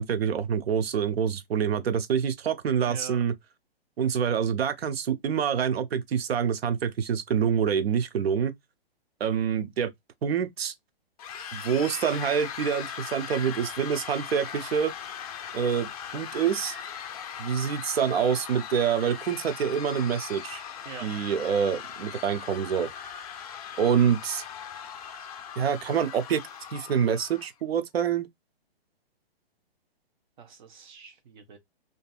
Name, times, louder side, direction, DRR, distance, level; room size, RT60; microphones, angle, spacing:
voice 1, 0.0-3.3 4.0-8.5 9.2-9.9 10.2-10.7 11.5-14.9 15.5-16.8 17.4-20.6 21.0-22.9 23.8-24.4 25.6-26.4 26.7-28.3, right 7 dB, 80° right, 0.6 m, -26 dB
voice 2, 2.9-3.2 20.8-21.1 30.4-31.6, right 6 dB, 50° right, 0.9 m, -44 dB
sound 1, 11.2-27.5, left 8 dB, 40° left, 0.4 m, -39 dB
2.7 x 2.4 x 2.3 m
hypercardioid pair, 145°, 30 cm